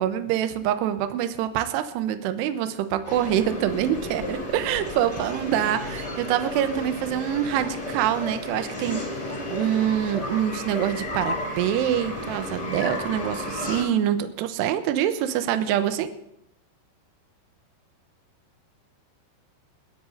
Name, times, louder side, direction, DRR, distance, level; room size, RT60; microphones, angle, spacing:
voice 1, 0.0-9.0 9.5-16.1, right 10 dB, 80° right, 9 dB, 2.5 m, -25 dB
sound 1, 3.0-13.8, left 1 dB, 20° left, 2.3 m, -33 dB
30.0 x 10.0 x 2.6 m, 0.81 s
omnidirectional pair, 5.7 m